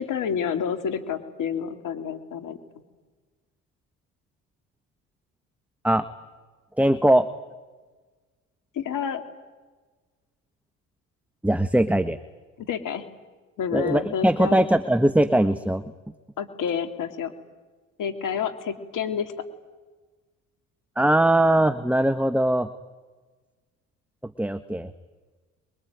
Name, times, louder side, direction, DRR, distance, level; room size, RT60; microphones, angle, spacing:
voice 1, 0.0-2.6 8.7-9.2 12.6-13.1 13.6-14.6 16.4-17.3 18.0-19.3, left 7 dB, 65° left, 7 dB, 3.0 m, -29 dB
voice 2, 6.8-7.3 11.4-12.2 13.7-15.8 21.0-22.7 24.2-24.9, right 1 dB, 5° right, 11 dB, 1.3 m, -21 dB
27.0 x 22.5 x 9.4 m, 1.3 s
supercardioid pair, 60°, 34 cm